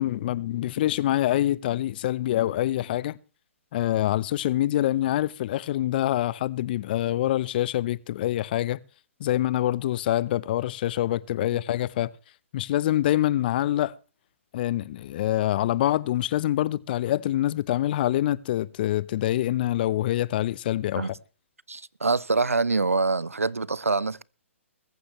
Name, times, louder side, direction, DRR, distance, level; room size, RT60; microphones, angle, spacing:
voice 1, 0.0-3.2 3.7-8.8 9.2-12.1 12.5-14.0 14.5-21.1, left 13 dB, 45° left, 0.7 m, -25 dB
voice 2, 21.7-24.2, right 3 dB, 90° right, 0.7 m, -25 dB
21.5 x 14.5 x 3.2 m
figure-of-eight pair, 130°, 7 cm